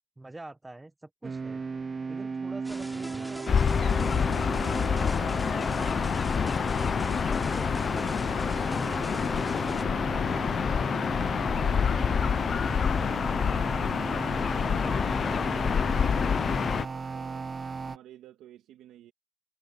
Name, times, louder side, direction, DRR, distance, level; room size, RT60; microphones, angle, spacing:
voice 1, 0.2-1.6 2.1-5.8 6.5-8.3 8.7-10.5 11.2-13.8, right 2 dB, 15° right, 1.1 m, -47 dB
sound 1, 1.2-18.0, right 4 dB, 35° right, 0.4 m, -37 dB
sound 2, 2.6-9.8, equal, ahead, 3.3 m, -44 dB
Gull seagull / Ocean, 3.5-16.9, left 7 dB, 50° left, 0.4 m, -27 dB
voice 2, 14.5-17.5 17.8-19.1, right 12 dB, 85° right, 2.1 m, -52 dB
cardioid pair, 90°, 0 cm